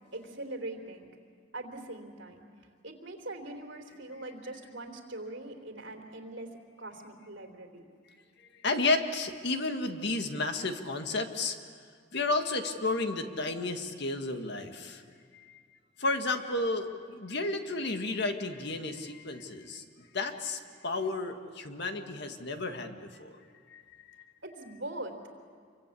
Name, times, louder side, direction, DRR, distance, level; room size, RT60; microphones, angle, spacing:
voice 1, 0.1-1.1 1.5-2.5 2.8-7.8 24.4-25.2, right 2 dB, 70° right, 3 dB, 3.4 m, -42 dB
voice 2, 8.6-11.6 12.1-15.0 15.3-15.4 16.0-19.8 20.1-23.3 23.7-23.8, left 3 dB, 60° left, 6 dB, 1.9 m, -32 dB
27.5 x 24.0 x 8.5 m, 2.1 s
head